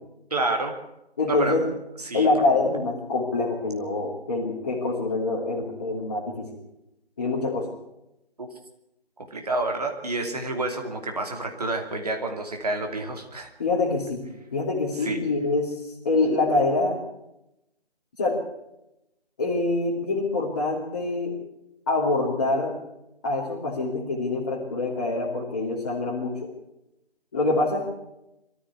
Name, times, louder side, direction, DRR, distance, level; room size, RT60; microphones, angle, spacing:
voice 1, 0.3-0.7 1.3-1.6 2.0-2.3 8.4-8.5 9.3-13.5 15.0-15.2, right 2 dB, 35° right, 3 dB, 2.9 m, -28 dB
voice 2, 1.2-1.7 2.1-6.5 7.2-7.7 13.6-15.8 16.0-17.0 18.2-18.4 19.4-21.3 21.9-22.8 23.2-26.5 27.3-27.9, left 3 dB, 20° left, -7 dB, 2.7 m, -25 dB
23.0 x 14.0 x 8.2 m, 0.88 s
figure-of-eight pair, 165°, 33 cm